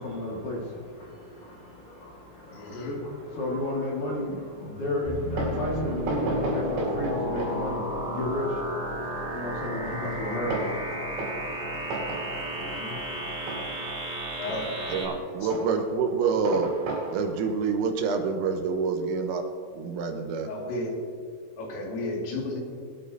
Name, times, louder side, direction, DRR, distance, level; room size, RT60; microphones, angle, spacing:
voice 1, 0.0-13.9, left 1 dB, 55° left, -3 dB, 2.5 m, -34 dB
voice 2, 2.5-3.0 12.5-13.0 14.4-14.8 20.5-20.9 21.6-22.6, left 2 dB, 80° left, -2 dB, 4.9 m, -33 dB
sound 1, 5.0-15.0, equal, 30° right, 3.7 m, -33 dB
Fireworks, 5.1-19.3, right 3 dB, 65° right, 5.5 m, -37 dB
voice 3, 14.5-16.7 17.1-19.5 19.7-20.5, right 5 dB, 80° right, 4 dB, 3.6 m, -27 dB
22.0 x 13.0 x 2.8 m, 2.1 s
omnidirectional pair, 5.9 m